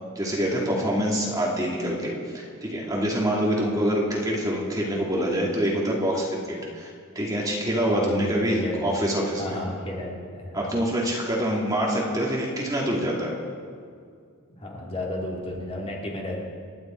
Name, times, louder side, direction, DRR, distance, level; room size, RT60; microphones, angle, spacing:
voice 1, 0.1-9.6 10.5-13.4, equal, 15° right, -4 dB, 2.6 m, -26 dB
voice 2, 7.9-8.9 9.4-10.8 14.6-16.4, left 1 dB, 25° left, -3 dB, 2.9 m, -33 dB
28.0 x 10.5 x 4.6 m, 2.2 s
head